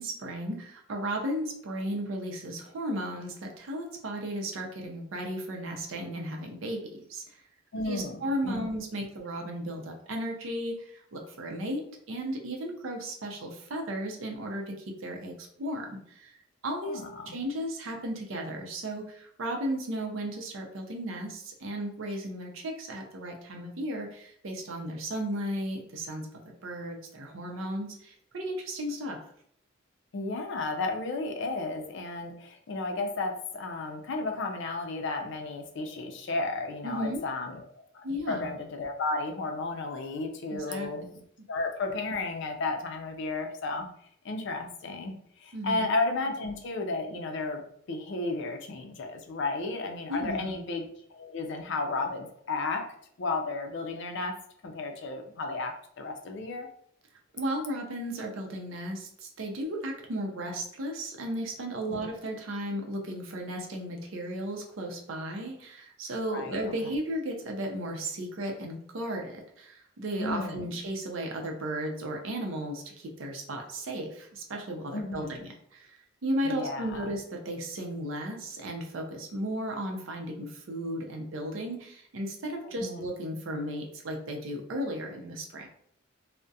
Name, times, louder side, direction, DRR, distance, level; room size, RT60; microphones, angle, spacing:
voice 1, 0.0-7.4 7.9-16.3 16.6-17.0 17.3-26.3 26.6-29.2 36.8-37.2 38.0-38.5 40.5-40.9 45.5-45.9 50.1-50.6 57.3-85.7, right 1 dB, 70° right, 2 dB, 0.5 m, -35 dB
voice 2, 7.7-8.7 16.8-17.3 30.1-37.6 37.9-41.1 41.5-43.9 44.2-52.8 53.2-54.3 54.6-56.7 61.9-62.1 66.3-66.9 70.2-70.7 74.9-75.4 76.4-77.1 82.8-83.1, left 3 dB, 60° left, 4 dB, 0.4 m, -33 dB
2.3 x 2.1 x 2.6 m, 0.67 s
head